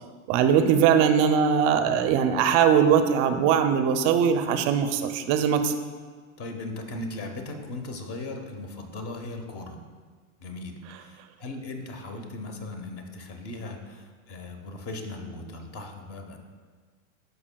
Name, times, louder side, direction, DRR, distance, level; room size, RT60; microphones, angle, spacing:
voice 1, 0.3-5.7, right 7 dB, 35° right, 8 dB, 0.5 m, -21 dB
voice 2, 6.4-9.8 10.4-16.4, left 2 dB, 35° left, 5 dB, 1.0 m, -38 dB
12.5 x 5.4 x 2.3 m, 1.5 s
hypercardioid pair, 120°, 42 cm